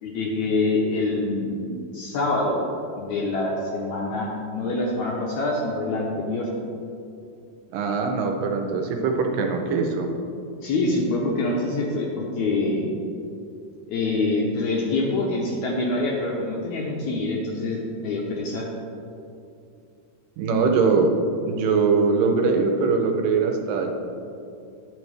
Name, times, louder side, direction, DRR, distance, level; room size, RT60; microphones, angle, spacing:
voice 1, 0.0-2.6 2.9-6.5 10.6-12.9 13.9-18.7, left 2 dB, 75° left, -2 dB, 1.8 m, -25 dB
voice 2, 7.7-10.1 20.4-21.1 21.5-23.9, right 4 dB, 80° right, 4 dB, 2.2 m, -22 dB
11.0 x 6.1 x 3.3 m, 2.6 s
omnidirectional pair, 4.0 m